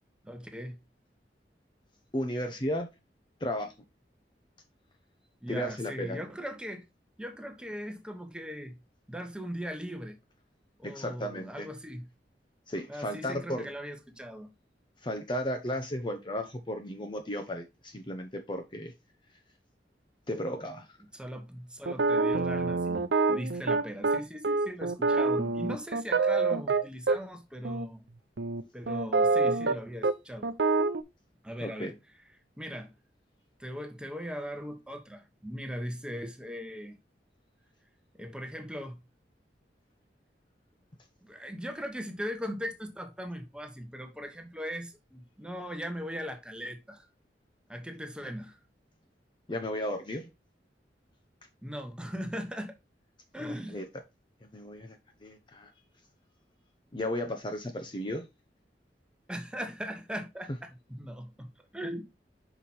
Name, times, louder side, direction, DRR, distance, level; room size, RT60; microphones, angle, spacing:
voice 1, 0.2-0.8 5.4-6.8 7.2-8.8 9.1-10.1 10.8-12.1 12.9-14.5 21.1-28.0 28.7-30.6 31.4-31.9 32.6-32.9 33.6-37.0 38.2-39.0 41.2-47.1 47.7-48.6 51.6-52.7 53.3-53.8 59.3-62.0, equal, 5° right, 1.1 m, -39 dB
voice 2, 2.1-2.9 3.4-3.7 5.5-6.2 10.8-11.7 12.7-13.7 15.0-18.9 20.3-21.0 31.6-31.9 49.5-50.3 53.4-53.8 54.5-55.7 56.9-58.3, left 1 dB, 25° left, 0.8 m, -34 dB
sound 1, 21.9-27.2 27.6-27.9 28.4-29.8 30.0-30.1 30.4-31.0, right 3 dB, 80° right, 0.7 m, -26 dB
5.9 x 5.0 x 4.2 m
head